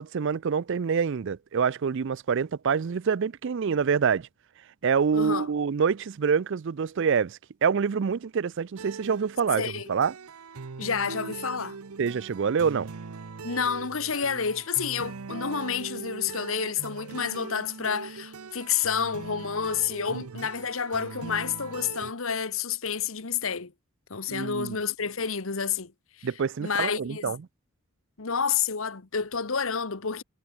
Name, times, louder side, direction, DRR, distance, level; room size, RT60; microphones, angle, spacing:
voice 1, 0.0-4.3 4.8-9.6 9.9-10.1 12.0-12.9 20.1-20.2 24.3-24.8 26.2-27.4, right 6 dB, 55° right, 0.4 m, -26 dB
voice 2, 5.1-5.5 9.6-9.9 10.8-11.8 13.4-23.7 24.1-25.9 26.2-26.3 26.6-27.3 28.2-30.2, left 6 dB, 65° left, 1.2 m, -29 dB
sound 1, 8.8-22.1, right 4 dB, 85° right, 0.8 m, -41 dB
head